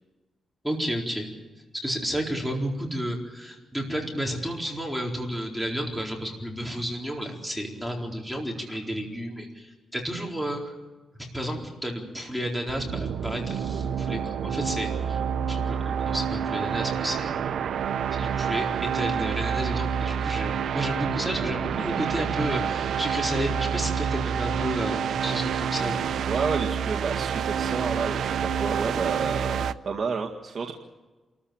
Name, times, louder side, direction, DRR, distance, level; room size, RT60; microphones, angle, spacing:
voice 1, 0.6-1.3 1.8-10.6 11.3-15.2 15.5-17.6 18.1-26.0, equal, ahead, 0 dB, 4.3 m, -31 dB
sound 1, 12.7-29.7, right 7 dB, 75° right, 0.7 m, -28 dB
voice 2, 26.3-30.7, right 5 dB, 45° right, 1 dB, 1.9 m, -30 dB
28.0 x 14.0 x 8.7 m, 1.2 s
cardioid pair, 115°, 0 cm